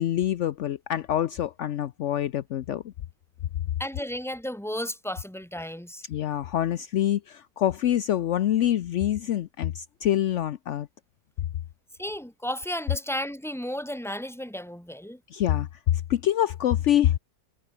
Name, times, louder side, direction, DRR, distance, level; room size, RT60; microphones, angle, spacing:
voice 1, 0.0-2.8 6.1-10.9 15.3-15.7 16.1-17.1, left 11 dB, 70° left, 0.7 m, -25 dB
voice 2, 3.8-6.0 12.0-15.2, equal, ahead, 2.8 m, -33 dB
omnidirectional pair, 1.9 m